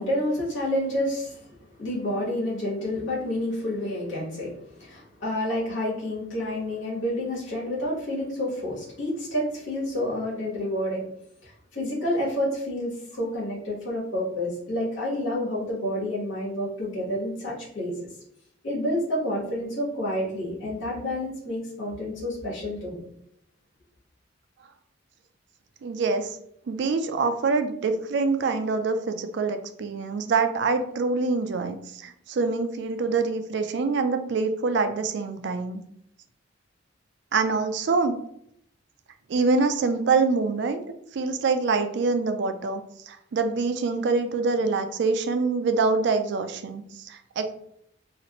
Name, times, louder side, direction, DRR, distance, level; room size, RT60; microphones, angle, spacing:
voice 1, 0.0-1.5 1.8-11.1 11.4-18.0 18.6-23.1, left 1 dB, 80° left, -7 dB, 1.4 m, -29 dB
voice 2, 25.8-26.4 26.7-35.8 37.3-38.2 39.3-40.8 41.1-42.8 43.1-47.6, right 4 dB, 60° right, 8 dB, 0.3 m, -25 dB
2.9 x 2.4 x 2.9 m, 0.73 s
head